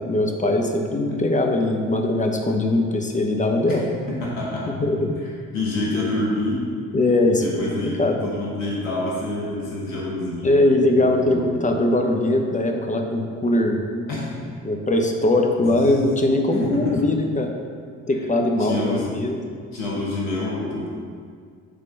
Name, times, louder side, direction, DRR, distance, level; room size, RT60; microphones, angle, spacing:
voice 1, 0.1-3.8 4.7-5.2 6.9-8.2 10.4-13.8 14.6-17.5 18.1-19.4, left 2 dB, 20° left, 3 dB, 0.9 m, -21 dB
voice 2, 4.1-4.7 5.2-6.6 7.4-10.5 10.9-11.5 14.1-14.3 15.6-16.1 16.6-17.1 18.6-19.1 19.7-20.9, left 2 dB, 90° left, -5 dB, 1.0 m, -27 dB
6.7 x 3.6 x 5.3 m, 2.1 s
hypercardioid pair, 45°, 38 cm